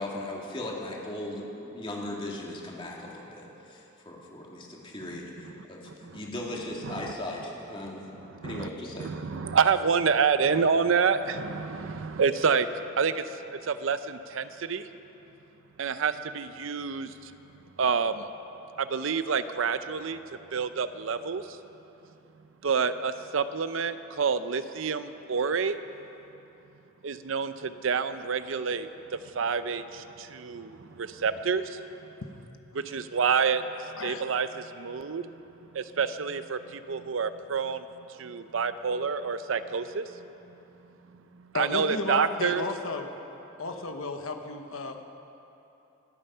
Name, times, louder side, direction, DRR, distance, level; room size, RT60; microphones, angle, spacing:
voice 1, 0.0-8.1 8.4-9.2, left 1 dB, 25° left, -2 dB, 2.3 m, -38 dB
voice 2, 5.9-6.2 6.8-7.1 8.1-8.7 9.0-14.9 15.8-17.3 17.8-18.3 18.8-21.6 22.6-25.8 27.0-31.8 32.7-35.3 35.7-42.7, right 5 dB, 65° right, 12 dB, 0.6 m, -28 dB
voice 3, 41.5-43.1 43.6-45.0, left 3 dB, 80° left, 5 dB, 1.0 m, -33 dB
25.5 x 8.9 x 5.6 m, 3.0 s
head